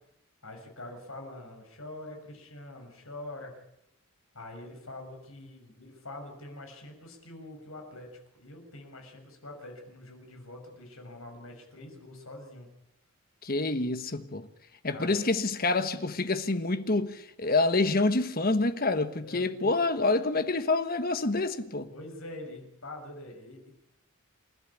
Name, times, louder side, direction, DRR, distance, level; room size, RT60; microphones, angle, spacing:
voice 1, 0.4-3.7 4.3-12.7 14.9-15.2 19.2-19.8 21.9-23.7, left 2 dB, 70° left, 6.6 m, -45 dB
voice 2, 13.4-14.5 14.8-21.9, left 3 dB, 45° left, 1.3 m, -27 dB
29.0 x 12.5 x 8.5 m
head